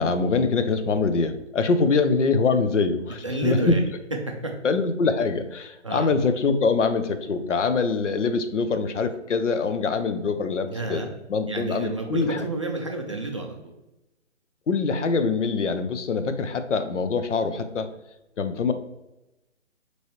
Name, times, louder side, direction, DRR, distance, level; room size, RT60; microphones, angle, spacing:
voice 1, 0.0-3.8 4.6-11.0 11.3-12.4 14.7-17.9 18.4-18.7, left 4 dB, 80° left, 10 dB, 0.6 m, -24 dB
voice 2, 3.2-3.8 4.3-4.5 5.8-6.1 10.7-11.1 11.5-13.7, right 2 dB, 30° right, 1 dB, 0.3 m, -30 dB
5.3 x 3.1 x 3.0 m, 0.96 s
figure-of-eight pair, 145°, 36 cm